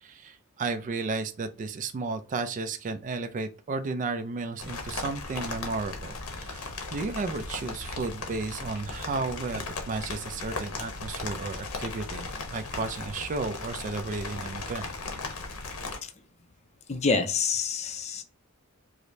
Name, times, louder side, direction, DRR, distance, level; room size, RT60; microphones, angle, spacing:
voice 1, 0.0-14.9, right 3 dB, 35° right, 8 dB, 0.3 m, -33 dB
sound 1, 4.6-16.0, left 3 dB, 75° left, 0.9 m, -37 dB
voice 2, 16.9-18.2, left 4 dB, 30° left, 8 dB, 0.4 m, -27 dB
4.8 x 2.0 x 2.6 m, 0.35 s
head